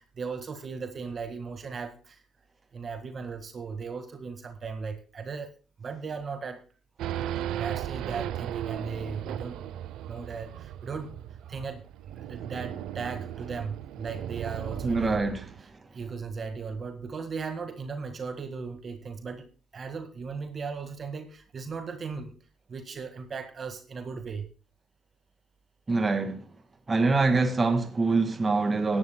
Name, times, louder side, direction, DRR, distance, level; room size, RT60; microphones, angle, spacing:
voice 1, 0.0-2.2 2.7-5.5 5.8-6.6 7.5-9.6 10.1-11.2 11.4-11.9 12.3-15.2 15.9-22.3 22.7-24.5, right 5 dB, 45° right, 1.7 m, -37 dB
Race car auto racing / Idling / Accelerating revving vroom, 7.0-15.6, right 11 dB, 85° right, 0.6 m, -36 dB
voice 2, 14.8-15.5 25.9-26.4 26.9-29.0, right 3 dB, 30° right, 1.9 m, -24 dB
17.0 x 11.5 x 2.2 m
cardioid pair, 90°, 0 cm